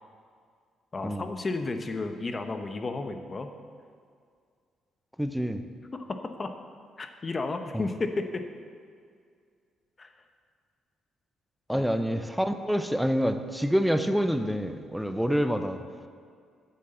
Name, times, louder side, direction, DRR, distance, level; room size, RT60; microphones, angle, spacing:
voice 1, 0.9-3.5 5.9-6.5 7.0-8.4 10.0-10.1 11.7-11.9, left 3 dB, 30° left, 6 dB, 1.0 m, -33 dB
voice 2, 5.2-5.6 7.7-7.8 11.7-15.8, equal, ahead, 8 dB, 0.7 m, -27 dB
9.8 x 7.4 x 6.7 m, 2.1 s
cardioid pair, 90°, 0 cm